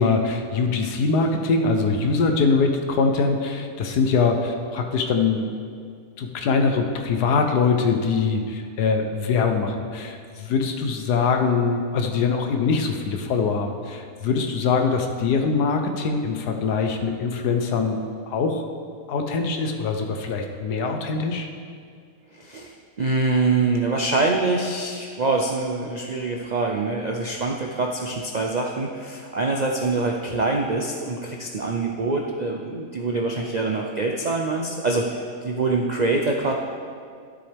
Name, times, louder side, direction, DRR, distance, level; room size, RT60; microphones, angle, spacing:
voice 1, 0.0-5.5 6.2-18.0 18.3-18.6 19.1-21.5, left 4 dB, 90° left, 4 dB, 1.4 m, -23 dB
voice 2, 22.3-36.5, right 3 dB, 85° right, 1 dB, 0.3 m, -25 dB
13.0 x 7.6 x 3.5 m, 2.1 s
omnidirectional pair, 1.6 m